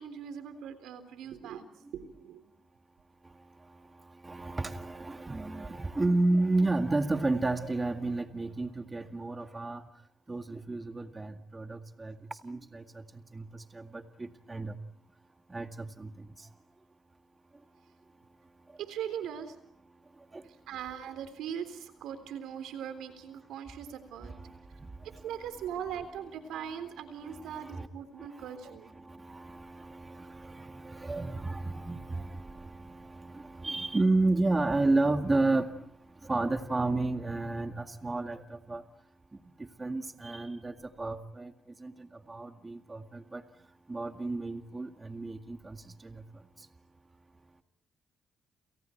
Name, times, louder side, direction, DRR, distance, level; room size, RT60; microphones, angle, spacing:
voice 1, 0.0-1.7 1.9-2.4 18.8-19.6 20.7-24.3 25.2-28.9, right 8 dB, 85° right, 10 dB, 3.7 m, -40 dB
voice 2, 4.2-9.8 10.3-13.1 13.3-14.7 15.5-16.1 20.3-20.4 24.2-24.9 27.2-27.9 28.2-35.8 36.2-38.8 39.6-41.5 41.8-43.4 43.9-46.2, right 2 dB, 20° right, 7 dB, 1.9 m, -32 dB
30.0 x 29.0 x 4.6 m, 0.72 s
cardioid pair, 90°, 0 cm